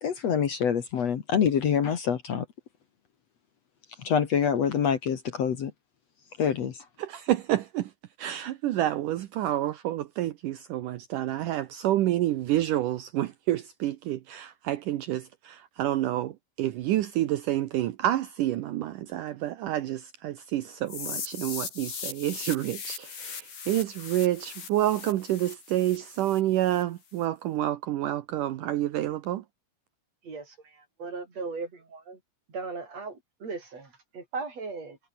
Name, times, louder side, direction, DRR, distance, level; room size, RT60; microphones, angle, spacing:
voice 1, 0.0-2.5 4.0-5.7 6.4-6.8, left 7 dB, 55° left, 2.5 m, -26 dB
voice 2, 7.0-7.9 8.2-29.4, right 13 dB, 70° right, 2.4 m, -28 dB
sound 1, 20.9-26.8, left 6 dB, 90° left, 7.0 m, -39 dB
voice 3, 30.2-32.2 32.5-35.0, right 4 dB, 45° right, 6.1 m, -38 dB
omnidirectional pair, 4.1 m